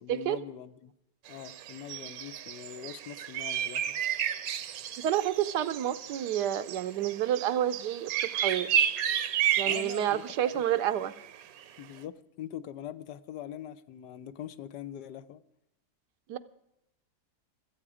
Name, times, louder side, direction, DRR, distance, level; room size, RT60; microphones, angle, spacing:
voice 1, 0.0-0.9 1.3-4.0 9.6-10.6 11.8-15.4, left 11 dB, 85° left, 14 dB, 1.3 m, -43 dB
sound 1, 1.3-11.7, right 9 dB, 70° right, 1.1 m, -32 dB
voice 2, 5.0-8.7 9.6-11.1 16.3-16.4, right 11 dB, 85° right, 12 dB, 1.3 m, -29 dB
26.0 x 8.7 x 4.9 m, 0.84 s
omnidirectional pair, 1.7 m